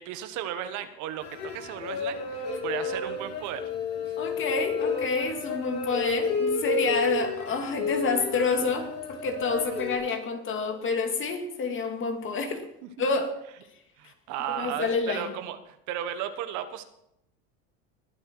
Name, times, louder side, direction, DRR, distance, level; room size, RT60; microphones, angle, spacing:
voice 1, 0.0-3.6 4.1-4.2 12.8-13.0 14.0-16.8, right 10 dB, 60° right, 10 dB, 1.4 m, -35 dB
sound 1, 1.2-10.0, left 4 dB, 60° left, 6.5 m, -31 dB
voice 2, 4.2-12.6 13.0-13.3 14.5-15.3, left 4 dB, 35° left, 5 dB, 2.5 m, -28 dB
20.5 x 8.0 x 4.7 m, 0.78 s
supercardioid pair, 95°, 33 cm